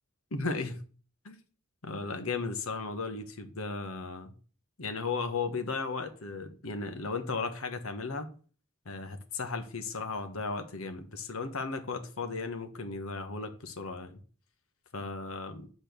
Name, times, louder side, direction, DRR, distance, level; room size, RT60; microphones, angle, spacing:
voice 1, 0.3-0.8 1.2-1.4 1.8-4.3 4.8-8.3 8.8-14.2 14.9-15.7, left 4 dB, 80° left, 1.3 m, -35 dB
8.3 x 4.4 x 6.9 m
head